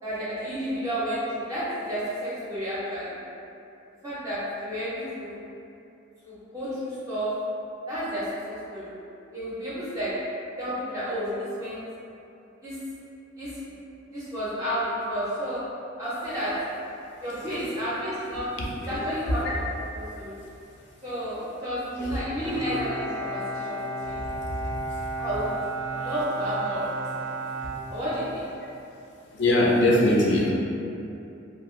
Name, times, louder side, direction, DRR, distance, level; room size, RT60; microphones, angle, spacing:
voice 1, 0.0-3.2 4.0-5.4 6.2-7.4 7.9-8.9 9.3-10.3 10.6-11.8 12.6-12.8 13.4-13.6 14.1-15.7 16.0-16.7 17.2-18.6 18.9-19.6 19.9-20.4 21.0-24.2 25.2-25.6 25.9-27.1 27.9-28.5, equal, 15° right, -11 dB, 0.4 m, -31 dB
Bowed string instrument, 22.4-28.6, right 2 dB, 80° right, 0.4 m, -33 dB
voice 2, 24.4-24.7 29.3-30.5, left 1 dB, 60° left, -4 dB, 0.4 m, -22 dB
2.5 x 2.2 x 3.0 m, 2.8 s
head